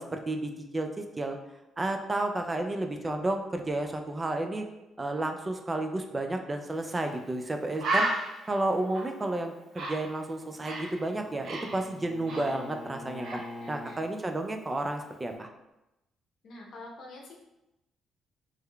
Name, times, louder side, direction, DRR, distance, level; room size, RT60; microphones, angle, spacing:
voice 1, 0.0-1.4 1.8-4.7 5.0-8.1 8.5-13.4 13.7-15.5, right 2 dB, 20° right, 5 dB, 0.3 m, -31 dB
Bird, 6.9-7.1 7.4-7.5 7.8-11.0 11.2-12.9 13.2-13.5, right 2 dB, 65° right, 0.7 m, -33 dB
Bowed string instrument, 10.3-14.0, left 2 dB, 25° left, 0.7 m, -45 dB
voice 2, 13.6-14.0 16.4-17.3, left 2 dB, 65° left, -1 dB, 0.7 m, -46 dB
3.6 x 3.2 x 2.2 m, 0.94 s
cardioid pair, 90°, 0 cm